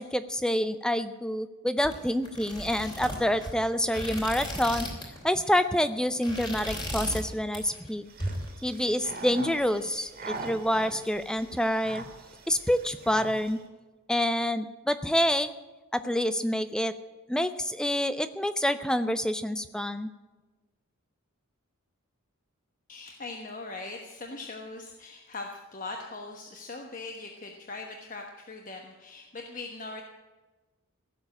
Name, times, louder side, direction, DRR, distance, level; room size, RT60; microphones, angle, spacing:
voice 1, 0.0-4.9 5.2-8.0 8.6-12.0 12.5-13.6 14.1-15.5 15.9-16.9 17.3-20.1, equal, 5° left, 12 dB, 0.5 m, -27 dB
sound 1, 1.8-5.2 5.5-5.7 6.1-7.3 7.5-7.9 8.2-9.2, left 1 dB, 20° left, 3.2 m, -36 dB
sound 2, 8.1-13.6, right 3 dB, 40° right, 2.2 m, -43 dB
voice 2, 22.9-30.0, left 3 dB, 35° left, 2 dB, 1.2 m, -40 dB
16.5 x 7.3 x 9.9 m, 1.2 s
head